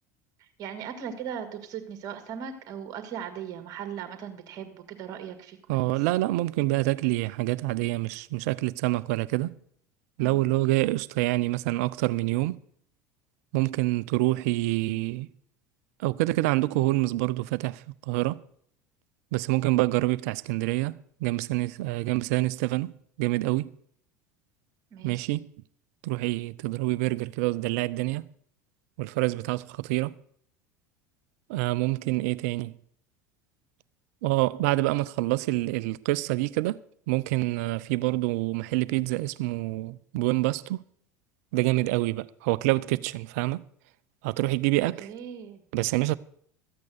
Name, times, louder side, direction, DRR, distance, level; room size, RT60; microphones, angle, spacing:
voice 1, 0.4-6.0 10.2-10.4 24.9-25.3 45.0-45.6, right 8 dB, 50° right, 1.9 m, -38 dB
voice 2, 5.7-9.5 10.2-12.6 13.5-15.3 16.0-18.4 19.3-22.9 23.2-23.7 25.0-25.5 26.0-28.3 29.0-30.1 31.5-32.7 34.2-36.8 37.1-40.8 41.5-43.6 44.2-45.1 45.7-46.2, right 19 dB, 65° right, 0.5 m, -26 dB
13.5 x 8.4 x 6.4 m
hypercardioid pair, 75°, 9 cm